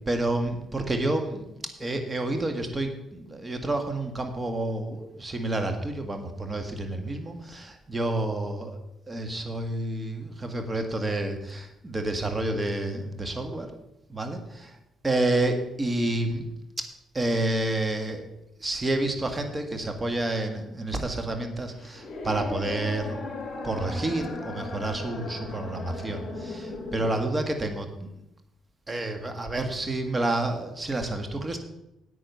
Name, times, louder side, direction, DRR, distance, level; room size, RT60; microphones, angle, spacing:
voice 1, 0.1-1.5 1.8-8.8 9.1-13.7 14.1-14.8 15.0-16.4 17.1-18.3 18.6-23.2 23.6-27.9 28.9-31.6, right 2 dB, 25° right, 6 dB, 1.7 m, -29 dB
sound 1, 21.6-27.2, left 3 dB, 45° left, 3.1 m, -37 dB
9.3 x 8.8 x 5.6 m, 0.87 s
cardioid pair, 90°, 0 cm